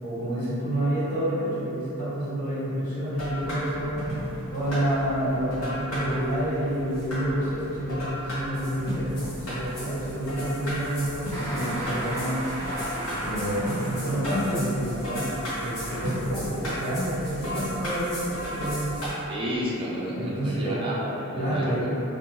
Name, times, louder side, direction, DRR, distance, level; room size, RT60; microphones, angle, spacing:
voice 1, 0.0-4.1 4.5-12.4 13.2-19.0 20.0-20.7 21.3-21.8, right 1 dB, 40° left, -13 dB, 1.0 m, -29 dB
sound 1, 3.1-19.1, equal, 75° left, 0.9 m, -34 dB
sound 2, 11.3-14.3 15.6-16.4, right 1 dB, 10° left, 0.7 m, -34 dB
voice 2, 19.3-21.9, equal, 25° right, -6 dB, 0.3 m, -31 dB
2.4 x 2.2 x 3.1 m, 3.0 s
head